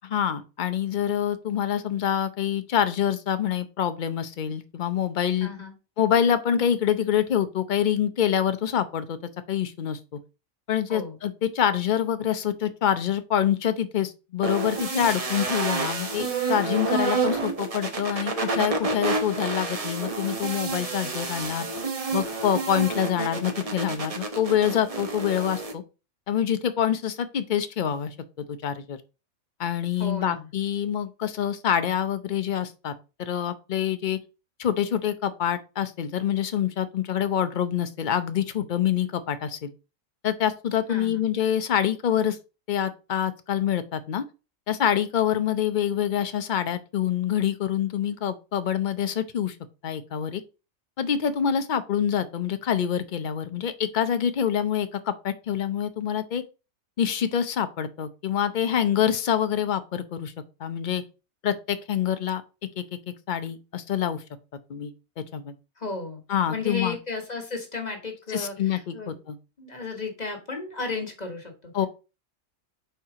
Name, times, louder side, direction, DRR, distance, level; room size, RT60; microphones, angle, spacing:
voice 1, 0.0-5.5 6.0-9.2 9.5-10.0 10.7-21.7 22.1-25.8 26.3-29.0 29.6-32.9 33.2-34.2 34.6-39.7 40.2-42.4 42.7-44.2 44.7-49.6 49.8-50.4 51.0-56.4 57.0-60.3 60.6-61.0 61.4-62.4 62.8-62.9 63.3-64.2 64.7-64.9 65.3-65.5 66.3-67.0 68.3-69.4 71.7-71.9, left 9 dB, 50° left, 0.6 m, -26 dB
voice 2, 5.4-5.7 10.9-11.1 30.0-30.5 40.9-41.2 65.8-66.2 66.5-69.2 69.6-71.7, left 3 dB, 30° left, 1.5 m, -34 dB
sound 1, 14.4-25.7, right 3 dB, 35° right, 0.7 m, -29 dB
4.6 x 4.4 x 4.8 m
omnidirectional pair, 1.4 m